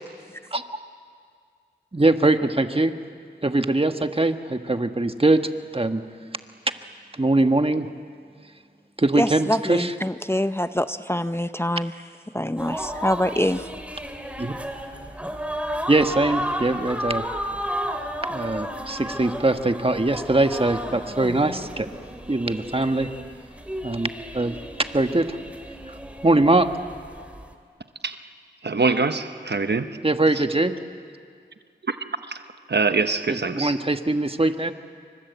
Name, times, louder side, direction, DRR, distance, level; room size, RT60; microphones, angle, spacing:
voice 1, 1.9-2.9 3.4-5.4 5.7-6.0 7.2-7.9 9.0-9.9 14.4-14.5 15.9-17.2 18.3-21.9 22.3-23.1 23.8-25.4 25.9-26.0 26.2-26.7 30.0-30.7 33.3-34.7, right 2 dB, 30° right, 8 dB, 1.4 m, -22 dB
voice 2, 9.1-11.9 12.3-13.7, left 1 dB, 15° left, 11 dB, 0.7 m, -25 dB
sound 1, 12.6-27.5, equal, 5° right, 2.9 m, -33 dB
voice 3, 28.6-30.0 30.3-30.4 31.8-33.8, right 4 dB, 65° right, 9 dB, 1.1 m, -25 dB
29.0 x 24.5 x 8.2 m, 2.1 s
wide cardioid pair, 50°, 19 cm